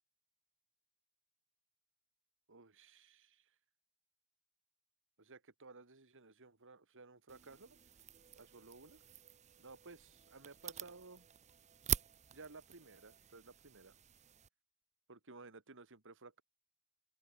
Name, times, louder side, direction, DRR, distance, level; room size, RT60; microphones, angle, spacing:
voice 1, 2.5-3.5 5.2-7.8 8.4-9.0 9.6-11.3 12.3-13.9 15.1-16.4, right 3 dB, 60° right, 2.6 m, -56 dB
sound 1, 7.3-14.5, right 9 dB, 30° right, 0.6 m, -45 dB
open air
head